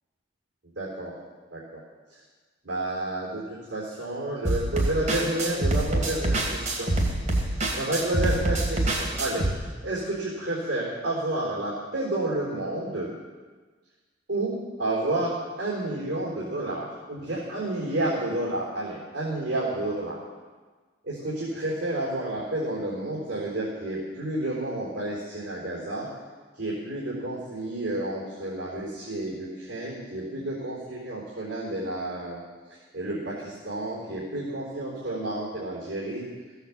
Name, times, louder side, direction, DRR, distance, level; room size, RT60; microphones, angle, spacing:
voice 1, 0.8-1.1 1.5-1.8 2.6-3.4 3.7-6.9 7.7-9.4 9.8-13.1 14.3-15.3 15.6-20.2 21.0-26.1 26.6-32.4 32.9-36.3, right 1 dB, 65° right, -7 dB, 3.9 m, -30 dB
sound 1, 4.4-9.5, right 1 dB, 40° right, 2.6 m, -25 dB
15.5 x 8.1 x 7.5 m, 1.4 s
head